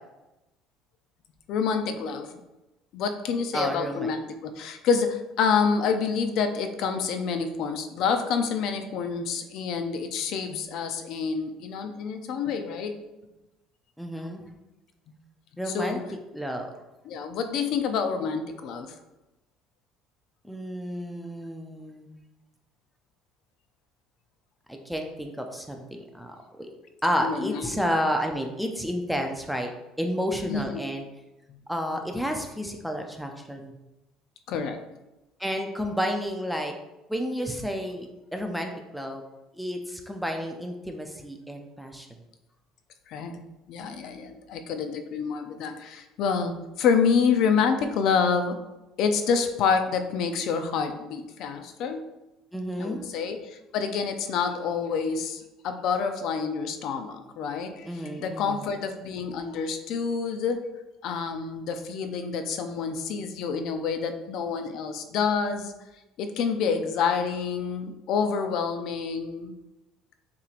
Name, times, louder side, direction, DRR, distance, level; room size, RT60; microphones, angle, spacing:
voice 1, 1.5-2.4 2.9-13.0 15.7-16.0 17.1-18.9 27.2-27.8 30.5-30.6 31.5-31.6 34.5-34.8 43.1-43.4 43.7-48.6 49.0-52.0 52.8-60.6 61.0-65.7 66.2-69.5, left 6 dB, 60° left, 7 dB, 0.5 m, -28 dB
voice 2, 3.5-4.1 14.0-14.4 15.6-16.0 16.3-16.7 20.4-22.1 24.7-26.7 27.0-29.7 30.0-31.0 31.7-33.7 35.4-36.7 37.1-39.2 39.5-42.1 52.5-53.0 57.9-58.6, equal, ahead, 3 dB, 0.4 m, -31 dB
6.7 x 3.1 x 2.5 m, 0.99 s
cardioid pair, 150°, 0 cm